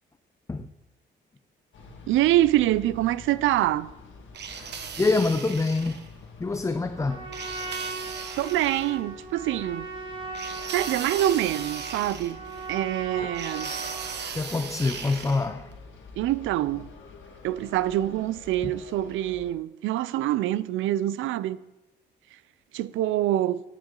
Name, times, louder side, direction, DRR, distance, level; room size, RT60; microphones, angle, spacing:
sound 1, 1.7-19.5, left 3 dB, 70° left, 1.9 m, -48 dB
voice 1, 2.1-3.9 8.4-9.9 10.7-12.4 12.7-13.7 16.2-16.9 17.4-21.6 22.7-23.6, right 14 dB, 85° right, 0.4 m, -25 dB
sound 2, 4.3-6.1 7.3-9.0 10.3-12.7 13.3-15.5, right 6 dB, 60° right, 1.2 m, -37 dB
voice 2, 5.0-6.0 6.4-7.3 14.3-15.7 18.6-18.7, left 3 dB, 15° left, 0.5 m, -25 dB
Trumpet, 6.9-14.2, right 3 dB, 25° right, 2.0 m, -38 dB
10.0 x 9.1 x 3.8 m
cardioid pair, 90°, 20 cm